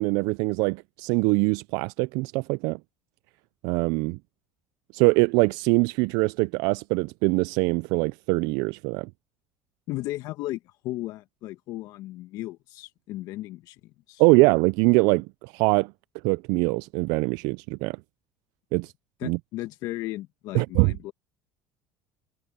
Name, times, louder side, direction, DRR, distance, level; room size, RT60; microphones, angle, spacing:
voice 1, 0.0-2.8 3.6-4.2 4.9-9.1 14.2-15.9 16.2-18.0 18.7-18.9 19.2-19.4 20.5-20.9, right 27 dB, 75° right, 0.4 m, -23 dB
voice 2, 9.9-14.2 19.2-21.1, left 17 dB, 65° left, 1.4 m, -35 dB
supercardioid pair, 85°, 7 cm